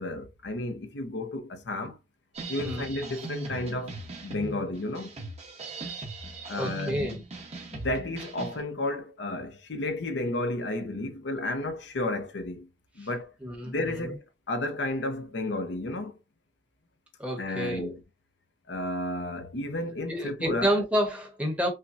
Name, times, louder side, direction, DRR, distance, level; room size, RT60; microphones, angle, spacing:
voice 1, 0.0-2.0 2.5-5.2 6.5-7.2 7.7-12.7 13.0-13.3 13.6-16.2 17.4-18.0 18.7-20.7, left 2 dB, 65° left, 0.6 m, -32 dB
sound 1, 2.3-8.6, right 2 dB, 35° right, 1.1 m, -39 dB
voice 2, 6.6-7.2 13.4-14.1 17.2-18.0 20.1-21.7, equal, 5° right, 1.1 m, -29 dB
5.6 x 2.2 x 2.5 m
head